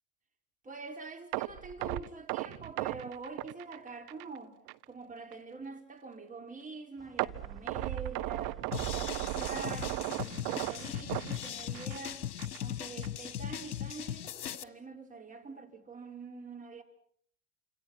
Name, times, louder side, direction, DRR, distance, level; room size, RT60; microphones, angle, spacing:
voice 1, 0.6-4.6 4.9-12.2 12.6-16.8, right 3 dB, 15° right, 4.4 m, -45 dB
sound 1, 1.3-4.4 4.7-4.8 5.3-5.4 7.2-12.1 12.4-12.6 13.0-13.1, right 19 dB, 45° right, 1.0 m, -36 dB
sound 2, 7.0-12.3, right 1 dB, ahead, 2.0 m, -59 dB
sound 3, 8.7-14.6, left 11 dB, 70° left, 1.3 m, -39 dB
29.0 x 27.0 x 5.8 m
figure-of-eight pair, 80°, 48 cm